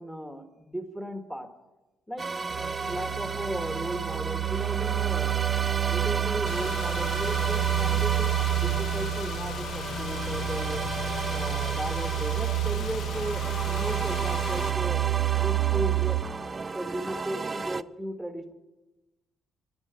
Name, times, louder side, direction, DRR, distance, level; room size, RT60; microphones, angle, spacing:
voice 1, 0.0-1.5 2.1-2.3 2.9-5.4 5.9-10.9 11.3-15.0 15.4-16.2 16.7-18.5, right 1 dB, 5° left, 6 dB, 1.6 m, -35 dB
sound 1, 2.2-17.8, right 4 dB, 30° right, 0.4 m, -34 dB
sound 2, 2.5-16.2, right 22 dB, 85° right, 0.8 m, -29 dB
Car / Engine, 6.5-14.7, left 8 dB, 70° left, 0.5 m, -37 dB
10.5 x 9.7 x 9.1 m, 1.1 s
cardioid pair, 90°, 0 cm